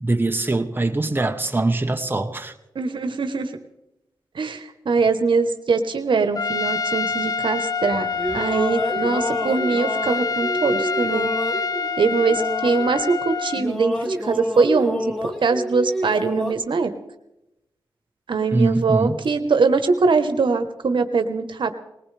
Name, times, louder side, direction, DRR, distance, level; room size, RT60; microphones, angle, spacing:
voice 1, 0.0-2.5 18.5-19.2, right 2 dB, 25° right, 6 dB, 1.1 m, -22 dB
voice 2, 2.7-3.5 4.3-8.1 8.3-11.3 12.0-15.1 15.4-16.9 18.3-21.7, right 4 dB, 80° right, 8 dB, 1.1 m, -22 dB
Trumpet, 6.4-13.7, left 5 dB, 50° left, 0.4 m, -26 dB
sound 1, 7.9-13.3 13.6-16.5, equal, 5° left, 2.3 m, -29 dB
20.0 x 19.0 x 3.4 m, 0.93 s
cardioid pair, 55°, 8 cm